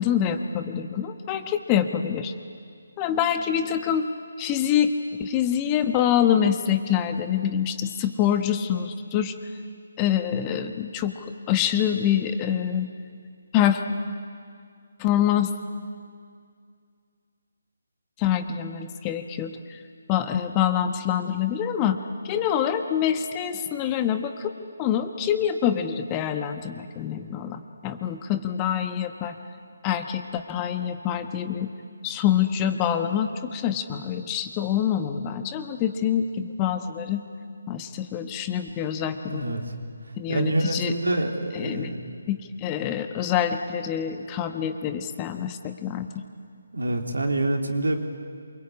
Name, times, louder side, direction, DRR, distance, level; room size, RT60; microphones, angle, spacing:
voice 1, 0.0-2.3 3.0-4.1 4.4-4.9 5.2-9.3 10.0-12.9 13.5-13.8 15.0-15.5 18.2-19.8 20.1-22.0 22.2-29.3 29.8-31.7 32.0-37.2 37.7-39.4 40.2-40.9 41.5-41.9 42.3-46.1, left 9 dB, 20° left, 7 dB, 1.3 m, -25 dB
voice 2, 39.3-39.7 40.3-42.2 46.7-48.0, right 2 dB, 75° right, 3 dB, 3.4 m, -26 dB
27.5 x 24.0 x 8.5 m, 2.3 s
figure-of-eight pair, 145°, 0 cm